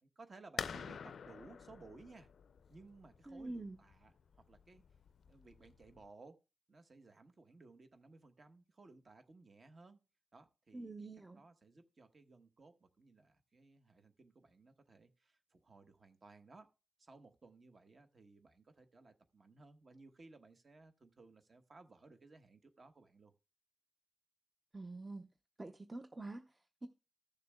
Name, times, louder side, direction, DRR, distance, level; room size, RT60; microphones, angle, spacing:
voice 1, 0.0-2.3 2.7-4.1 4.5-4.8 5.3-6.4 6.7-10.0 10.3-10.9 11.4-16.7 17.0-23.3, right 3 dB, 45° right, 1.1 m, -59 dB
sound 1, 0.6-6.1, left 6 dB, 75° left, 0.4 m, -48 dB
voice 2, 3.3-3.8 10.7-11.4 24.7-25.3 25.6-26.9, right 2 dB, 20° right, 0.6 m, -46 dB
15.0 x 6.7 x 2.2 m
wide cardioid pair, 110°, 0 cm